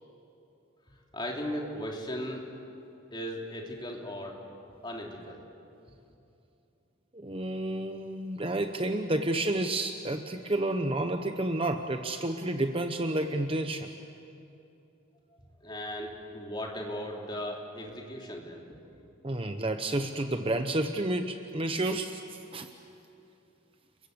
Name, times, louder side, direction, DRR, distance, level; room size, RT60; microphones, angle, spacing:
voice 1, 1.1-2.5 3.1-4.4 4.8-5.4 15.6-18.8, equal, 20° left, 0 dB, 3.1 m, -37 dB
voice 2, 7.1-13.9 19.2-22.7, right 1 dB, 25° right, 7 dB, 0.9 m, -30 dB
30.0 x 22.5 x 7.9 m, 2.8 s
head